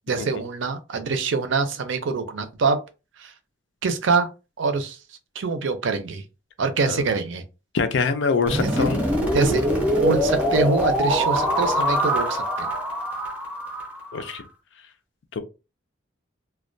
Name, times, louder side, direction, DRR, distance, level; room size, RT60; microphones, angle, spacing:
voice 1, 0.1-2.8 3.2-3.3 3.8-4.3 4.6-5.0 5.4-6.2 6.6-7.4 8.6-8.9 9.3-9.6 9.9-12.7, right 4 dB, 75° right, 0.5 m, -24 dB
voice 2, 7.7-9.1 14.1-14.4 15.3-15.4, left 5 dB, 70° left, 0.4 m, -24 dB
sound 1, 8.5-14.4, equal, 10° right, 0.6 m, -23 dB
2.2 x 2.2 x 2.6 m
head